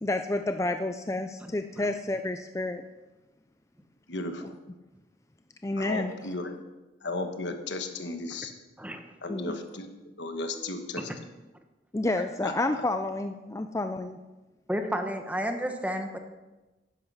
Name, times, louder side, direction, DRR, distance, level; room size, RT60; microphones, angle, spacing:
voice 1, 0.0-2.8 5.6-6.4 9.3-9.6 11.9-14.2, left 2 dB, 15° left, 7 dB, 0.5 m, -30 dB
voice 2, 4.1-4.4 5.8-6.5 7.0-8.5 9.2-9.9 10.2-11.0 12.4-12.5, left 2 dB, 70° left, 6 dB, 1.3 m, -34 dB
voice 3, 8.8-9.1 11.0-11.1 14.7-16.2, equal, 10° right, 5 dB, 1.1 m, -32 dB
11.5 x 10.5 x 5.6 m, 1.1 s
head